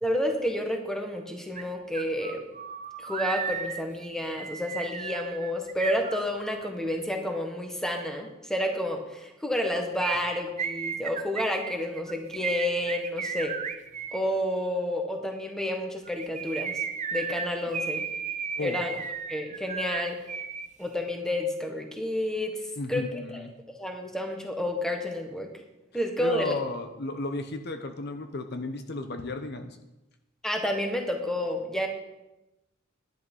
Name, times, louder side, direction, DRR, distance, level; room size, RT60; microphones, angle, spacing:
voice 1, 0.0-2.4 3.0-13.5 14.1-16.8 17.1-18.0 18.6-18.9 19.3-20.2 20.8-22.5 22.9-25.5 25.9-26.5 30.4-31.9, left 1 dB, 5° left, 3 dB, 1.5 m, -30 dB
sound 1, 1.6-1.7 1.9-6.7 10.0-14.2 16.1-20.7 20.9-21.0, right 6 dB, 35° right, 0.7 m, -34 dB
voice 2, 22.8-23.5 26.2-29.8, left 2 dB, 55° left, 7 dB, 0.9 m, -34 dB
11.0 x 10.5 x 5.6 m, 0.97 s
head